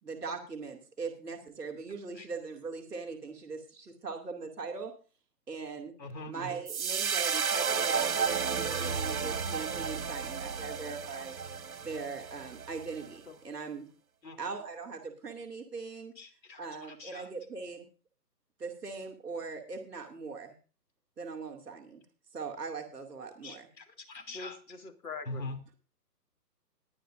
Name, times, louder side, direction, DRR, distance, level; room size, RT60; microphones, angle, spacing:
voice 1, 0.0-4.9 5.5-5.9 6.3-11.3 11.8-13.9 14.4-16.1 16.6-17.9 18.6-20.5 21.2-22.0 22.3-23.7, right 4 dB, 5° right, 0.9 m, -40 dB
voice 2, 6.0-6.3 14.2-14.5 16.1-17.3 23.4-24.6 25.3-25.6, left 2 dB, 90° left, 3.0 m, -43 dB
sound 1, 6.7-13.1, right 6 dB, 60° right, 1.5 m, -32 dB
voice 3, 24.3-25.4, left 4 dB, 60° left, 2.6 m, -43 dB
20.0 x 10.0 x 2.6 m
hypercardioid pair, 165°, 49 cm